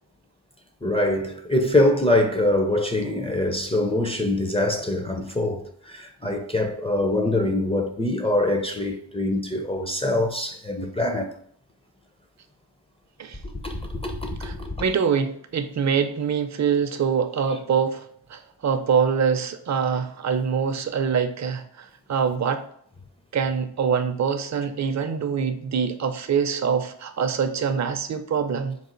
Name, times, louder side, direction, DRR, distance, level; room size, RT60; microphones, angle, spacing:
voice 1, 0.8-11.3 13.6-14.7, left 1 dB, 15° left, 0.4 m, -24 dB
voice 2, 14.8-18.0 18.3-22.6 23.3-28.8, right 6 dB, 40° right, 0.5 m, -24 dB
4.1 x 2.4 x 3.8 m
wide cardioid pair, 55°, 44 cm